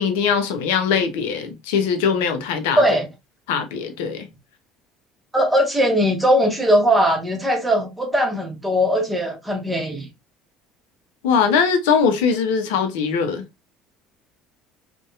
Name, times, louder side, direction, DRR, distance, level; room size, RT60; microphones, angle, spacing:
voice 1, 0.0-2.8 3.5-4.3 11.2-13.4, left 6 dB, 75° left, 0.5 m, -21 dB
voice 2, 2.8-3.1 5.3-10.1, equal, 10° right, 0.8 m, -19 dB
2.6 x 2.1 x 2.3 m
hypercardioid pair, 70°, 0 cm